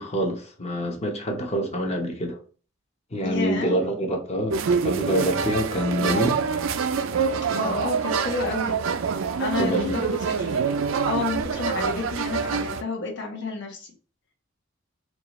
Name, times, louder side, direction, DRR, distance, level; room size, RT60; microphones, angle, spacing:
voice 1, 0.0-2.4 3.1-6.4 9.6-10.1, equal, 35° left, 0.9 m, -26 dB
voice 2, 3.2-3.7 7.5-8.8 9.1-10.7 11.1-13.9, left 3 dB, 60° left, 1.1 m, -30 dB
sound 1, 4.5-12.8, right 5 dB, 75° right, 0.4 m, -26 dB
4.7 x 2.4 x 3.0 m
head